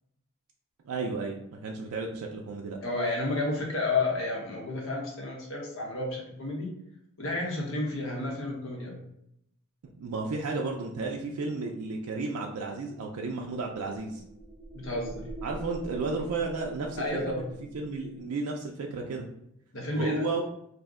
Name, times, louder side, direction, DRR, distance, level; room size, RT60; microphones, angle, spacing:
voice 1, 0.8-2.8 10.0-14.2 15.4-17.0 17.7-19.2 19.9-20.4, right 3 dB, 80° right, 0 dB, 0.4 m, -33 dB
voice 2, 2.8-6.7 7.2-9.0 14.7-15.3 17.0-17.5 19.7-20.2, left 2 dB, 60° left, -1 dB, 0.8 m, -31 dB
sound 1, 13.4-18.3, right 2 dB, ahead, 0.6 m, -43 dB
2.6 x 2.1 x 3.5 m, 0.77 s
head